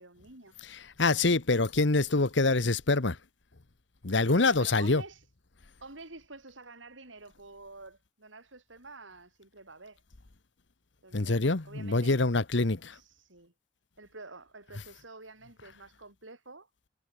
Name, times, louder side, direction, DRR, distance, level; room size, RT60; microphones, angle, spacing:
voice 1, 0.0-0.5 4.2-5.2 5.8-10.0 11.0-12.2 12.9-13.5 14.0-16.7, right 3 dB, 90° right, 5.9 m, -49 dB
voice 2, 0.6-3.2 4.0-5.0 11.1-13.0, left 3 dB, 70° left, 1.3 m, -25 dB
head